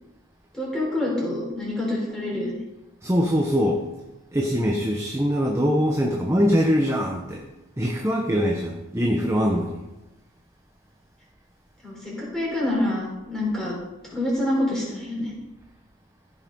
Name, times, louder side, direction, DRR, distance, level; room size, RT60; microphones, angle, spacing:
voice 1, 0.5-2.5 11.8-13.7 14.1-15.3, left 1 dB, 5° left, -5 dB, 4.2 m, -26 dB
voice 2, 3.0-3.9 4.3-7.4 7.8-9.8, equal, 15° right, 0 dB, 0.9 m, -22 dB
14.5 x 6.2 x 5.4 m, 1.0 s
head